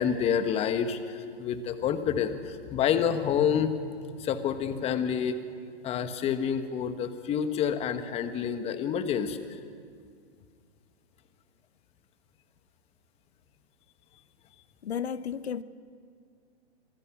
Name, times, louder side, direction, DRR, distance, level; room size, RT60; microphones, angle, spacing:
voice 1, 0.0-3.7 4.2-5.3 5.8-9.4, left 8 dB, 20° left, 9 dB, 1.3 m, -28 dB
voice 2, 14.8-15.6, left 8 dB, 75° left, 15 dB, 1.1 m, -33 dB
26.5 x 23.0 x 6.2 m, 2.2 s
hypercardioid pair, 140°, 33 cm